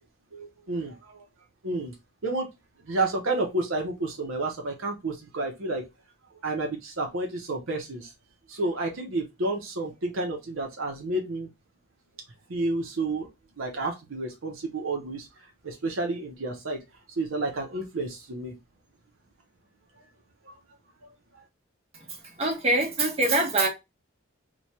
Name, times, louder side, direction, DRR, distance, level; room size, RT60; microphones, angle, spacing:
voice 1, 0.3-1.2 1.6-1.9 2.2-2.5 2.8-5.8 6.4-8.1 8.5-11.5 12.5-13.3 13.6-15.3 15.6-16.8 17.2-18.5 20.4-20.6, right 2 dB, 70° right, 0.7 m, -30 dB
voice 2, 22.4-23.7, right 2 dB, 30° right, 1.1 m, -23 dB
3.1 x 2.2 x 4.1 m
head